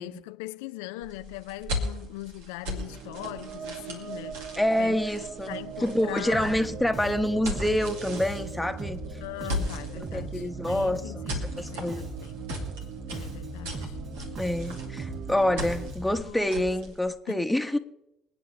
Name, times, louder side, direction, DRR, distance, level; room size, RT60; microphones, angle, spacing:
voice 1, 0.0-5.0 5.5-6.6 9.2-12.3 13.1-14.0 16.2-16.5 17.3-17.5, left 19 dB, 75° left, 0.4 m, -40 dB
sound 1, 1.0-17.1, left 1 dB, 75° right, 2.7 m, -38 dB
sound 2, 2.7-15.9, right 10 dB, 55° right, 0.5 m, -42 dB
voice 2, 4.6-9.0 10.1-11.0 11.6-12.1 14.4-17.8, left 1 dB, 5° left, 1.2 m, -27 dB
Bass guitar, 6.3-16.2, right 2 dB, 35° right, 6.0 m, -39 dB
27.0 x 9.4 x 3.3 m
hypercardioid pair, 65°, 0 cm